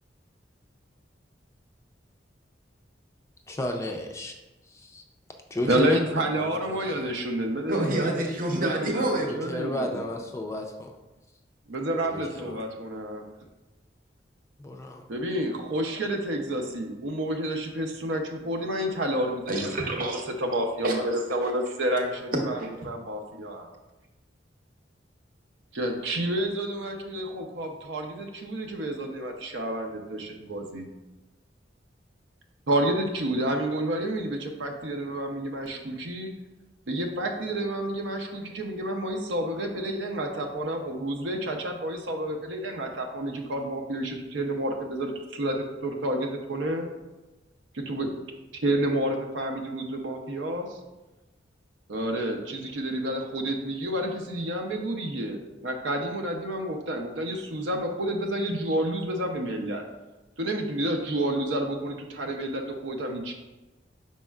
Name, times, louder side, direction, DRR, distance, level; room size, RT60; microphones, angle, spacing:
voice 1, 3.5-4.4 4.7-5.0 5.5-7.1 9.2-10.9 12.1-12.6 14.6-15.0, left 1 dB, 15° left, 3 dB, 0.3 m, -33 dB
voice 2, 5.7-8.1 8.5-10.1 11.7-13.3 15.1-19.5 20.4-22.6 22.8-23.7 25.7-30.9 32.7-36.3 36.9-45.6 45.8-46.9 47.7-48.1 48.6-50.8 51.9-59.8 60.4-63.3, right 1 dB, 85° right, 3 dB, 0.6 m, -29 dB
voice 3, 7.7-9.3 19.5-20.2 20.8-21.5 22.6-22.7, right 1 dB, 50° right, 1 dB, 0.8 m, -28 dB
5.2 x 4.2 x 2.3 m, 1.1 s
head